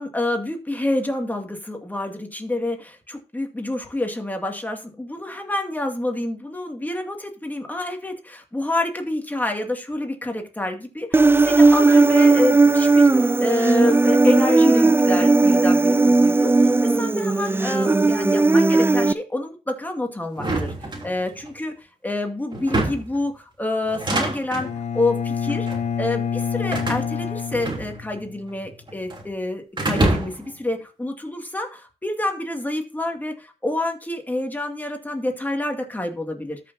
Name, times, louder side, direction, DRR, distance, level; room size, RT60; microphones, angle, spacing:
voice 1, 0.0-24.7 24.9-25.7 26.0-36.6, left 2 dB, 15° left, 3 dB, 2.2 m, -28 dB
Human voice, 11.1-19.1, right 3 dB, 20° right, 0.4 m, -16 dB
sound 1, 20.4-21.5 22.5-23.2 23.9-24.7 25.5-25.9 26.7-28.2 28.5-29.3 29.8-30.5, right 2 dB, 40° right, 3.2 m, -26 dB
Bowed string instrument, 24.6-28.4, left 7 dB, 70° left, 0.8 m, -27 dB
13.5 x 6.0 x 2.8 m, 0.33 s
cardioid pair, 60°, 12 cm